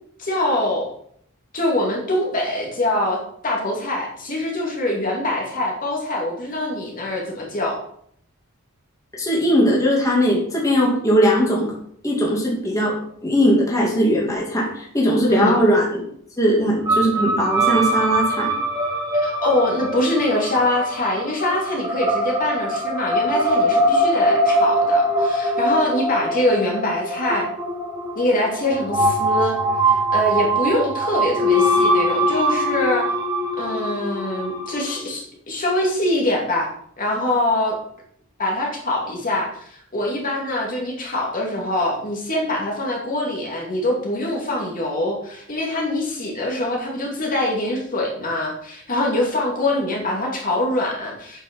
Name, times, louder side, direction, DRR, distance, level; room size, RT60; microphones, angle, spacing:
voice 1, 0.2-0.9 1.5-7.8 15.3-15.6 19.1-27.5 28.1-29.6 29.9-33.1 33.6-36.7 37.0-37.7 38.4-51.4, left 1 dB, 40° left, -1 dB, 2.4 m, -24 dB
voice 2, 9.1-11.7 12.0-12.9 13.2-16.0 16.4-18.5, equal, 15° left, -4 dB, 2.4 m, -19 dB
sound 1, 16.9-35.0, right 1 dB, 20° right, 2.0 m, -22 dB
8.4 x 6.2 x 6.0 m, 0.66 s
head